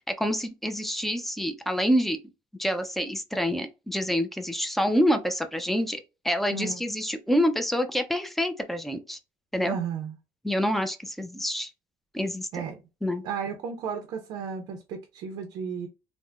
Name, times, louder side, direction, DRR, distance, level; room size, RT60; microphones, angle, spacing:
voice 1, 0.1-2.2 2.6-6.0 6.2-9.2 9.5-9.8 10.4-11.7 12.1-12.6 13.0-13.2, equal, ahead, 0.4 m, -27 dB
voice 2, 6.5-6.8 9.7-10.2 12.5-12.8 13.2-15.9, right 6 dB, 70° right, 0.6 m, -33 dB
3.4 x 2.1 x 2.3 m
cardioid pair, 125°, 8 cm